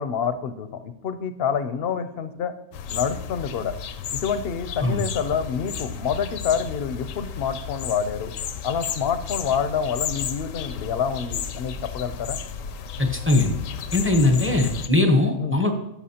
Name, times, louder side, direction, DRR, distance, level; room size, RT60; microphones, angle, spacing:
voice 1, 0.0-2.5 2.9-3.7 4.1-8.3 8.6-12.4 15.4-15.6, left 7 dB, 60° left, 11 dB, 0.7 m, -27 dB
sound 1, 2.7-14.9, left 7 dB, 90° left, 1.0 m, -33 dB
voice 2, 13.0-13.5 13.9-15.7, left 2 dB, 10° right, 3 dB, 0.7 m, -20 dB
13.0 x 5.7 x 2.8 m, 0.91 s
omnidirectional pair, 1.3 m